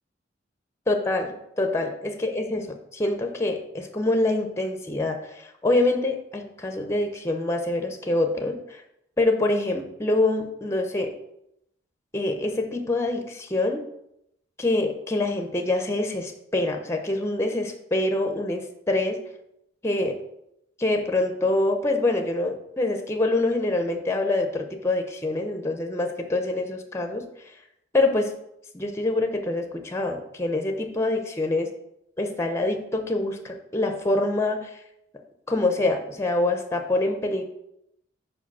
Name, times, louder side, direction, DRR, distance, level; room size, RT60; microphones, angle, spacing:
voice 1, 0.9-8.8 9.2-11.1 12.1-13.8 14.6-19.2 19.8-20.2 20.8-27.2 27.9-28.3 28.7-31.7 32.2-34.8 35.5-37.4, left 2 dB, 15° left, 5 dB, 0.6 m, -25 dB
4.9 x 4.9 x 6.0 m, 0.81 s
head